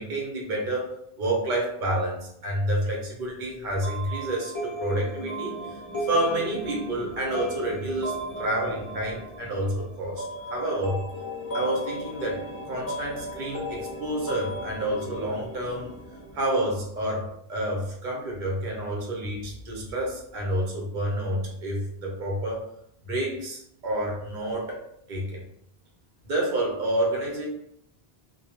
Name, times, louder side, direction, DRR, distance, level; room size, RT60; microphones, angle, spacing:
voice 1, 0.0-5.8 6.1-11.0 11.5-15.9 16.3-22.6 23.0-24.8 25.1-25.4 26.2-27.5, right 1 dB, 55° right, -1 dB, 0.8 m, -29 dB
sound 1, 3.8-16.4, equal, 25° left, 0.5 m, -35 dB
2.2 x 2.0 x 2.8 m, 0.72 s
omnidirectional pair, 1.1 m